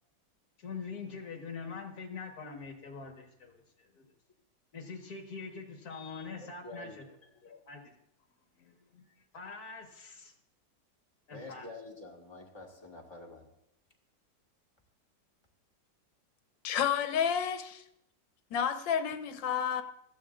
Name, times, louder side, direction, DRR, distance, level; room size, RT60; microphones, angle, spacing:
voice 1, 0.6-4.1 4.7-7.0 7.4-7.8 8.6-9.1 9.3-10.3 11.3-11.7, left 5 dB, 55° left, 1.8 m, -44 dB
voice 2, 6.6-7.4 11.3-13.4, left 2 dB, 15° left, 1.7 m, -47 dB
voice 3, 16.6-17.8 18.5-19.8, left 8 dB, 85° left, 1.5 m, -30 dB
17.5 x 13.0 x 2.5 m
omnidirectional pair, 2.0 m